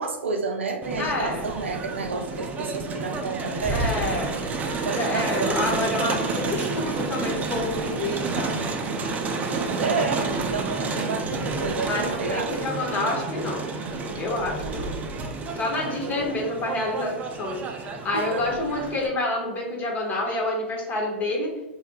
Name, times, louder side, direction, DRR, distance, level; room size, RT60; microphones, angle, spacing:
voice 1, 0.0-3.8 4.7-5.8 9.8-12.7 14.6-15.0 15.7-16.3 18.1-18.7, right 4 dB, 80° right, 4 dB, 0.5 m, -31 dB
Crowd, 0.8-19.1, right 3 dB, 25° right, 0.4 m, -30 dB
voice 2, 1.0-1.4 3.7-4.3 5.0-8.6 11.8-13.6 14.2-14.9 15.6-21.5, left 2 dB, 25° left, 0 dB, 0.8 m, -28 dB
3.2 x 2.7 x 2.3 m, 1.0 s
figure-of-eight pair, 100°, 6 cm